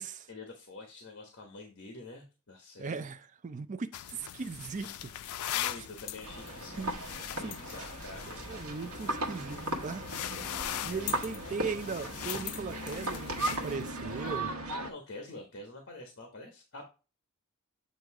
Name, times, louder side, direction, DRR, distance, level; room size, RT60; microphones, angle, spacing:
voice 1, 0.3-3.1 5.2-8.4 10.8-11.1 14.8-16.8, left 2 dB, 55° left, 1.2 m, -47 dB
voice 2, 2.8-5.1 5.4-5.9 6.8-6.9 7.4-7.6 7.8-7.9 8.5-10.1 10.5-14.6, right 5 dB, 35° right, 0.4 m, -39 dB
sound 1, 3.9-13.8, left 12 dB, 80° left, 0.4 m, -40 dB
sound 2, 4.5-14.4, left 1 dB, 35° left, 2.0 m, -55 dB
sound 3, 6.2-14.9, right 1 dB, 75° right, 1.2 m, -37 dB
7.8 x 2.8 x 4.7 m
head